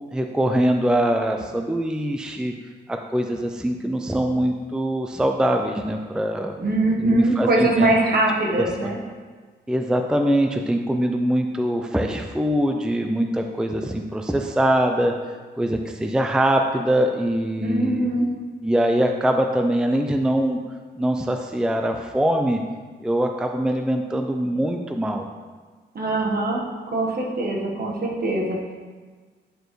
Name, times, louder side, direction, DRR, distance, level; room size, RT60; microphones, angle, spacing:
voice 1, 0.1-2.5 2.9-6.6 7.0-8.0 8.5-8.9 9.7-15.1 15.6-18.1 18.6-20.6 21.0-22.6 23.0-25.2, right 1 dB, 5° right, 4 dB, 0.4 m, -23 dB
voice 2, 6.6-9.0 17.6-18.3 25.9-26.6 26.9-28.7, right 2 dB, 55° right, -1 dB, 1.3 m, -22 dB
9.1 x 4.5 x 3.1 m, 1.5 s
cardioid pair, 85°, 19 cm